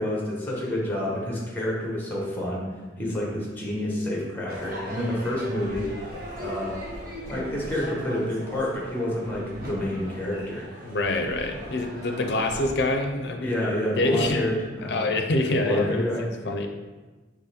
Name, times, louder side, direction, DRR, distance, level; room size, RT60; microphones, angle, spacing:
voice 1, 0.0-2.6 3.0-5.9 6.4-6.8 7.2-10.7 11.6-11.7 13.4-16.5, left 1 dB, 10° left, -4 dB, 1.0 m, -29 dB
Crowd / Fireworks, 4.5-12.7, equal, 50° right, 1.1 m, -39 dB
voice 2, 10.8-13.5 14.0-14.5 14.9-16.7, left 2 dB, 60° left, 4 dB, 0.5 m, -25 dB
4.0 x 3.0 x 4.2 m, 1.2 s
head